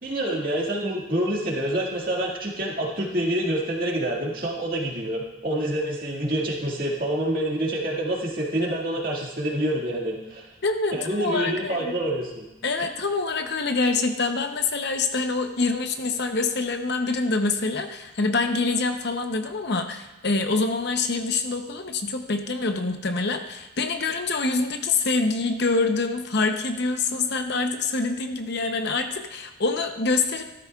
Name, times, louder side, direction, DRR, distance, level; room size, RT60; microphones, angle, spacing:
voice 1, 0.0-10.5 10.9-12.4, right 1 dB, 45° right, -2 dB, 2.0 m, -27 dB
voice 2, 10.6-11.9 12.6-30.4, left 3 dB, 55° left, 6 dB, 0.8 m, -25 dB
14.5 x 12.5 x 2.4 m, 1.0 s
head